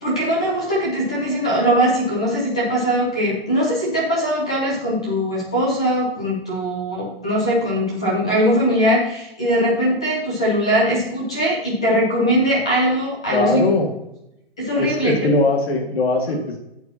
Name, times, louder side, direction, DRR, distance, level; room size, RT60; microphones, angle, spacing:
voice 1, 0.0-13.6 14.6-15.1, equal, 5° left, -5 dB, 0.4 m, -20 dB
voice 2, 13.3-13.9 14.8-16.6, left 2 dB, 70° left, 3 dB, 1.9 m, -20 dB
11.0 x 8.2 x 2.8 m, 0.84 s
hypercardioid pair, 180°, 32 cm